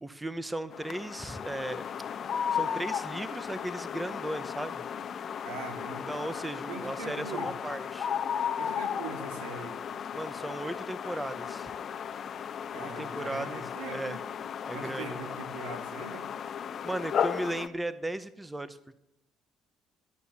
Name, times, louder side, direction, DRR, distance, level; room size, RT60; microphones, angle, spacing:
voice 1, 0.0-1.9 2.2-4.8 6.1-8.1 10.1-11.7 12.7-14.2 14.7-15.3 16.8-19.0, right 1 dB, 10° right, 14 dB, 1.0 m, -36 dB
sound 1, 0.7-17.7, left 8 dB, 50° left, 0.8 m, -35 dB
voice 2, 5.4-6.1 6.7-7.5 8.6-9.8 12.7-14.2 14.7-16.3, right 4 dB, 90° right, 6 dB, 2.2 m, -41 dB
12.0 x 11.0 x 7.1 m, 0.83 s
supercardioid pair, 70°, 0 cm